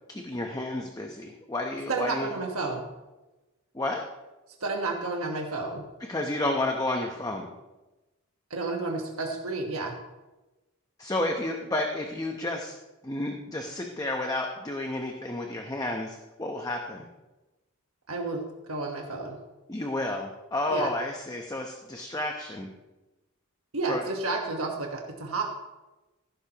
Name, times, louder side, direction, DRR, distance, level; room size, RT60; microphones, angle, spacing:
voice 1, 0.1-2.3 3.7-4.0 6.0-7.5 11.0-12.7 13.0-17.1 19.7-22.7 23.9-24.0, left 1 dB, 15° left, 2 dB, 0.8 m, -31 dB
voice 2, 1.9-2.9 4.6-5.8 8.5-9.9 18.1-18.4 18.7-19.4 20.7-20.9 23.7-25.4, right 3 dB, 70° right, 1 dB, 1.3 m, -31 dB
15.5 x 12.0 x 3.0 m, 1.1 s
head